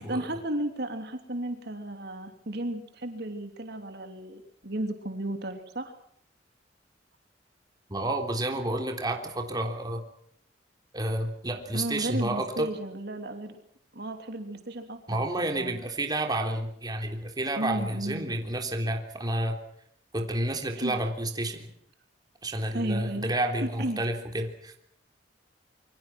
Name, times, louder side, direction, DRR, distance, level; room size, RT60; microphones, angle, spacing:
voice 1, 0.0-5.9 11.7-13.6 13.9-15.8 17.6-18.3 20.7-21.0 22.7-23.3 23.6-24.0, right 1 dB, 60° right, 6 dB, 3.1 m, -34 dB
voice 2, 7.9-10.0 10.9-12.7 15.1-19.6 20.1-21.7 22.4-24.7, right 1 dB, 20° right, 3 dB, 3.5 m, -30 dB
27.5 x 24.5 x 6.1 m, 0.66 s
head